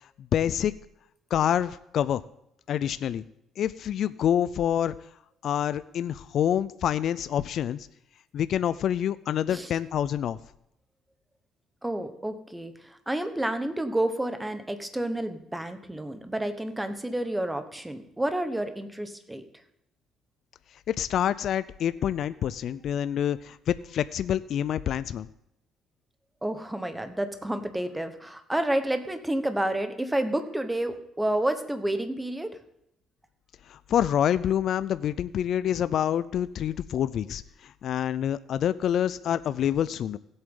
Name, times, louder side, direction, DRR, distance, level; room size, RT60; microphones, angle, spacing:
voice 1, 0.3-0.7 1.3-2.2 2.7-3.2 3.6-4.9 5.4-7.9 8.3-10.4 20.9-25.3 33.7-40.2, left 10 dB, 60° left, 14 dB, 0.4 m, -27 dB
voice 2, 11.8-19.4 26.4-32.6, right 1 dB, 10° right, 9 dB, 1.1 m, -30 dB
17.0 x 7.9 x 3.8 m, 0.79 s
cardioid pair, 125°, 0 cm